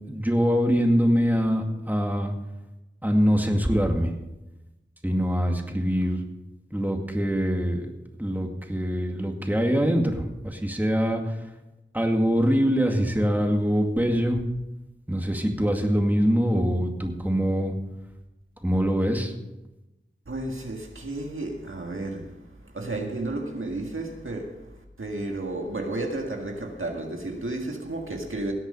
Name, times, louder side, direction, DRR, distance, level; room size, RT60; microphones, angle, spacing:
voice 1, 0.1-2.3 3.0-4.1 5.0-6.2 6.7-7.9 8.2-11.4 11.9-14.4 15.1-17.7 18.6-19.3, equal, 10° right, 2.1 m, -23 dB
voice 2, 20.3-28.5, right 2 dB, 90° right, 1.8 m, -32 dB
17.5 x 8.1 x 5.5 m
wide cardioid pair, 45°, 20 cm